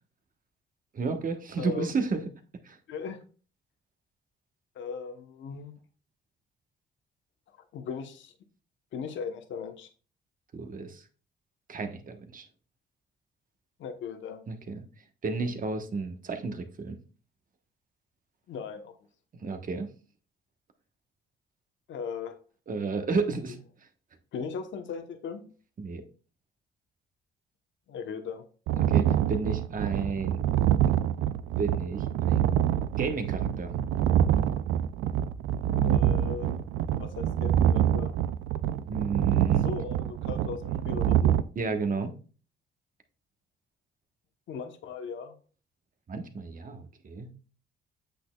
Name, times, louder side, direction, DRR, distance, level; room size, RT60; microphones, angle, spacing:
voice 1, 0.9-2.2 2.6-2.8 10.5-11.0 11.7-12.5 14.5-14.7 15.2-17.0 19.4-19.9 22.7-23.6 25.8-26.0 28.8-30.4 31.6-32.5 33.0-33.7 38.9-39.6 41.5-42.1 46.1-47.3, right 4 dB, 45° right, 7 dB, 1.1 m, -32 dB
voice 2, 1.6-1.9 2.9-3.2 4.7-5.7 7.5-8.3 8.9-9.9 13.8-14.4 18.5-18.9 21.9-22.4 24.3-25.4 27.9-28.4 35.8-36.6 36.9-38.1 39.6-41.4 44.5-45.3, left 6 dB, 75° left, 7 dB, 1.0 m, -38 dB
sound 1, 28.7-41.4, right 10 dB, 85° right, 0.4 m, -26 dB
8.3 x 6.1 x 2.3 m, 0.38 s
cardioid pair, 90°, 20 cm